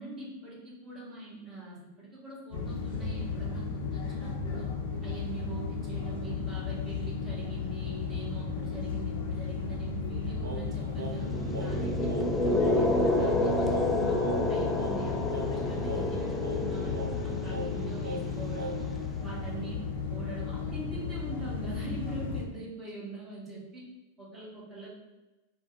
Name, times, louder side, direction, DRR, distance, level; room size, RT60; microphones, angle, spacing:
voice 1, 0.0-4.7 5.0-12.1 12.4-18.9 19.2-19.8 20.1-23.8 24.2-24.9, right 2 dB, 20° right, -6 dB, 1.5 m, -43 dB
sound 1, 2.5-22.4, left 5 dB, 55° left, 0.6 m, -34 dB
Singing, 10.4-19.0, right 3 dB, 65° right, 0.5 m, -40 dB
sound 2, 11.2-19.3, left 2 dB, 5° left, 0.4 m, -30 dB
3.4 x 2.3 x 4.0 m, 1.1 s
figure-of-eight pair, 90°, 0 cm